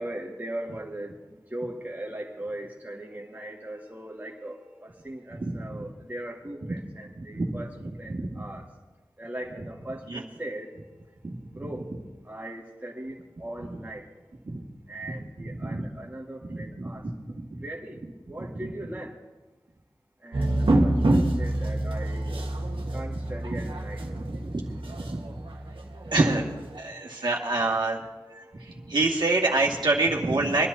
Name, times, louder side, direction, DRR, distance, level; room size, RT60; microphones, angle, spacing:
voice 1, 0.0-8.7 9.2-11.9 12.2-14.1 14.9-18.0 18.3-19.1 20.2-22.4 22.9-24.1 25.8-26.1 26.7-29.4, right 1 dB, 20° right, -2 dB, 1.9 m, -40 dB
voice 2, 5.3-5.8 7.3-8.3 10.1-10.2 11.2-11.4 14.4-14.6 15.1-15.2 15.5-15.9 16.5-17.6 18.6-18.7 22.8-23.0 23.5-23.7 24.0-24.7 24.9-25.4 26.1-28.0 28.3-30.7, right 2 dB, 60° right, -2 dB, 2.0 m, -28 dB
sound 1, 20.3-26.8, right 1 dB, 85° right, 1.5 m, -27 dB
25.0 x 11.0 x 2.8 m, 1.2 s
wide cardioid pair, 60°, 9 cm